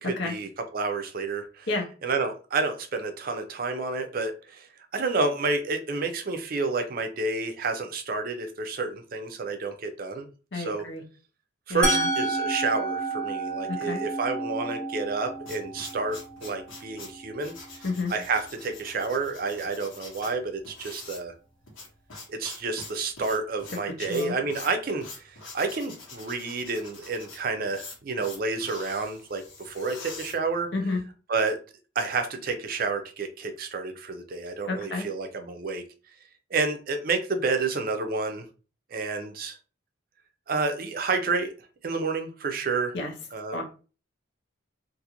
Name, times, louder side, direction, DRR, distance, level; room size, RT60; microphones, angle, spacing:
voice 1, 0.0-1.7 2.0-4.7 4.9-10.3 10.5-10.9 11.7-17.5 18.1-21.3 22.3-30.7 31.3-31.6 32.0-35.8 36.5-38.4 38.9-39.6 40.5-41.5 41.8-43.0 43.3-43.6, right 3 dB, 45° right, 6 dB, 0.5 m, -29 dB
voice 2, 10.5-11.0 11.7-12.1 13.7-14.0 17.8-18.1 24.0-24.3 30.7-31.0 34.7-35.1 42.9-43.1 43.5-43.6, left 3 dB, 60° left, 2 dB, 0.6 m, -30 dB
Musical instrument, 11.8-17.7, right 2 dB, 5° left, 0.8 m, -31 dB
sound 1, 15.1-31.0, left 3 dB, 80° left, 1.2 m, -45 dB
2.5 x 2.5 x 2.9 m, 0.35 s
head